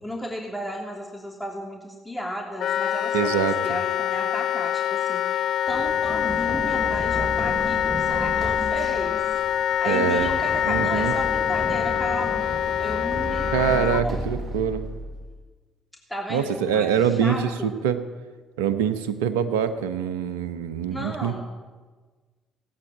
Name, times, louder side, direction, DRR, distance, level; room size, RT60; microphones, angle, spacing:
voice 1, 0.0-9.2 9.8-12.4 12.8-13.5 13.9-14.2 16.1-17.7 20.9-21.4, equal, 5° left, -1 dB, 3.1 m, -34 dB
Wind instrument woodwind instrument, 2.6-14.0, left 10 dB, 60° left, 0.4 m, -25 dB
voice 2, 3.1-3.6 9.9-10.3 10.7-11.1 13.5-14.8 16.3-18.0 18.6-21.4, right 8 dB, 80° right, 11 dB, 1.0 m, -24 dB
Run, 5.7-15.4, right 1 dB, 25° right, 3.3 m, -34 dB
17.0 x 9.1 x 8.8 m, 1.4 s
hypercardioid pair, 50°, 0 cm